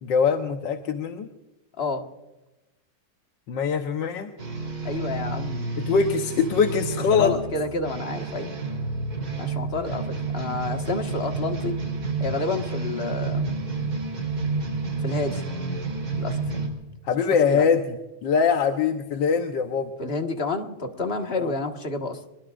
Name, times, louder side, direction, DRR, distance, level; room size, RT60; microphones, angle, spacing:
voice 1, 0.0-1.3 3.5-4.3 5.8-7.4 17.0-19.9 21.3-21.5, left 6 dB, 65° left, 5 dB, 1.7 m, -23 dB
sound 1, 4.4-16.7, right 3 dB, 50° right, 4.2 m, -30 dB
voice 2, 4.8-5.8 7.1-8.5 9.4-11.8 12.2-13.5 15.0-15.4 16.2-16.6 17.5-17.7 20.0-22.2, left 3 dB, 30° left, 4 dB, 1.7 m, -29 dB
25.0 x 21.5 x 2.5 m, 1.0 s
omnidirectional pair, 2.2 m